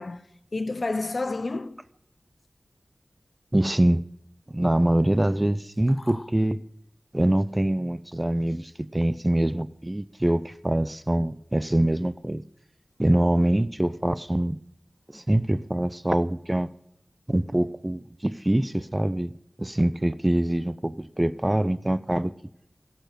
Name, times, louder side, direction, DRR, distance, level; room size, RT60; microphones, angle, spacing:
voice 1, 0.0-1.8 6.0-6.3, left 3 dB, 60° left, 0.6 m, -31 dB
voice 2, 3.5-4.0 4.5-6.6 7.1-12.4 13.0-14.6 15.1-16.7 17.3-19.3 19.6-22.3, right 1 dB, 20° right, 0.5 m, -24 dB
17.0 x 6.8 x 7.8 m
wide cardioid pair, 70°, 0 cm